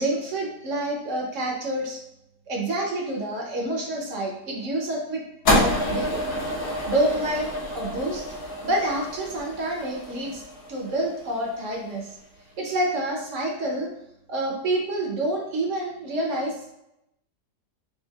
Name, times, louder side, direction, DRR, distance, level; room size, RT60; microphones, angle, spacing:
voice 1, 0.0-2.0 2.5-5.2 5.5-6.2 6.8-8.2 8.6-10.4 10.7-12.2 12.6-13.9 14.3-16.5, right 1 dB, 55° right, -1 dB, 1.0 m, -28 dB
sound 1, 5.5-11.8, left 1 dB, 65° left, 1.5 m, -28 dB
6.2 x 2.4 x 2.3 m, 0.83 s
omnidirectional pair, 1.8 m